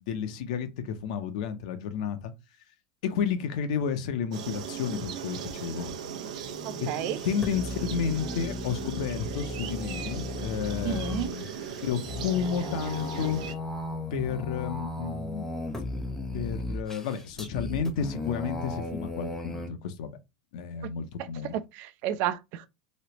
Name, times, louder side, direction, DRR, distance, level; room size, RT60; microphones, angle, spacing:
voice 1, 0.0-2.3 3.0-5.9 6.8-6.9 7.2-11.5 11.8-13.4 14.1-15.5 16.3-20.2 20.5-21.5, left 7 dB, 70° left, 0.7 m, -31 dB
sound 1, 4.3-13.5, right 8 dB, 85° right, 0.8 m, -38 dB
sound 2, 6.4-19.7, left 2 dB, 10° left, 0.8 m, -36 dB
voice 2, 6.6-7.2 10.9-11.3 21.2-22.7, right 11 dB, 50° right, 0.4 m, -32 dB
3.1 x 2.9 x 2.9 m
supercardioid pair, 135°, 4 cm